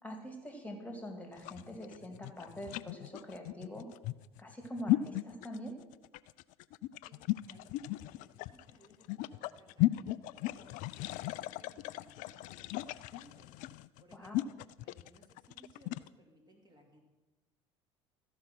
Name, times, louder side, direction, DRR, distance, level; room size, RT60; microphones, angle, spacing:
voice 1, 0.0-3.9 4.4-5.8 14.1-14.5, equal, 10° left, 4 dB, 2.3 m, -44 dB
sound 1, 1.3-16.1, left 17 dB, 55° left, 0.4 m, -36 dB
voice 2, 7.0-10.8 11.2-14.5 14.8-17.0, right 1 dB, 25° right, 0 dB, 3.1 m, -63 dB
13.5 x 5.7 x 5.9 m, 1.1 s
hypercardioid pair, 70°, 16 cm